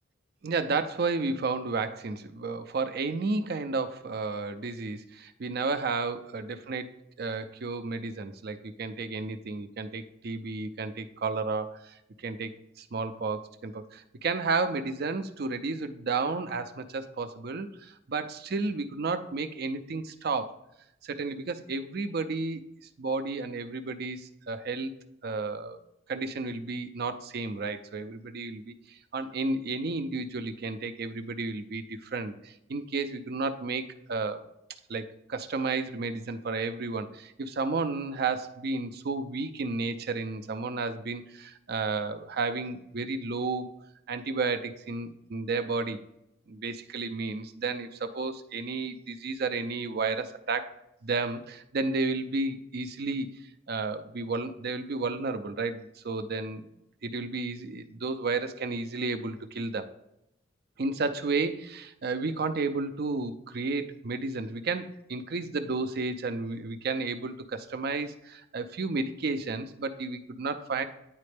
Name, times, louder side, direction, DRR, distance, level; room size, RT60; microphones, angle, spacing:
voice 1, 0.4-6.9 7.2-12.0 12.2-12.5 12.8-20.6 21.0-22.6 23.0-24.9 25.2-25.8 26.1-34.5 34.9-43.8 44.1-46.0 46.5-50.8 51.0-53.3 53.7-56.6 57.0-59.9 60.8-70.8, right 3 dB, 55° right, 10 dB, 0.5 m, -32 dB
9.5 x 4.2 x 3.3 m, 0.80 s
head